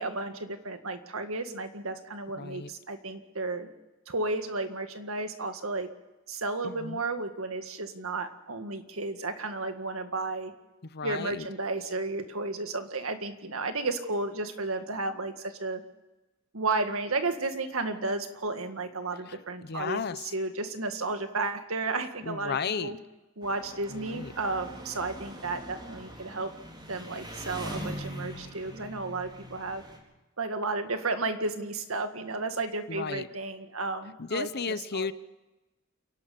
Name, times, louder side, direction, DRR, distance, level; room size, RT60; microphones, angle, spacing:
voice 1, 0.0-3.7 4.1-5.9 6.3-10.5 11.0-15.8 16.5-23.0 23.4-26.5 26.9-29.8 30.4-35.1, right 3 dB, 85° right, 7 dB, 1.9 m, -33 dB
voice 2, 2.4-2.7 6.6-7.0 10.8-11.5 19.3-19.4 19.6-20.3 22.2-23.0 23.9-24.3 27.7-27.9 32.9-33.3 34.2-35.1, left 5 dB, 50° left, 15 dB, 0.8 m, -34 dB
Engine, 23.4-30.0, equal, 20° right, 4.3 m, -42 dB
29.0 x 12.0 x 8.6 m, 1.1 s
head